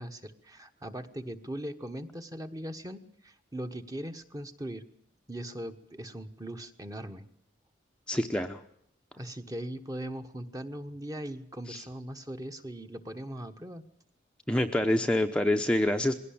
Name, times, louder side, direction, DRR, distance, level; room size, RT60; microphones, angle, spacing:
voice 1, 0.0-4.9 5.3-7.2 9.2-13.8, right 1 dB, 20° right, 8 dB, 1.3 m, -40 dB
voice 2, 8.1-8.6 11.7-11.8 14.5-16.1, left 1 dB, 5° left, 4 dB, 0.8 m, -26 dB
21.5 x 17.5 x 8.7 m, 0.69 s
head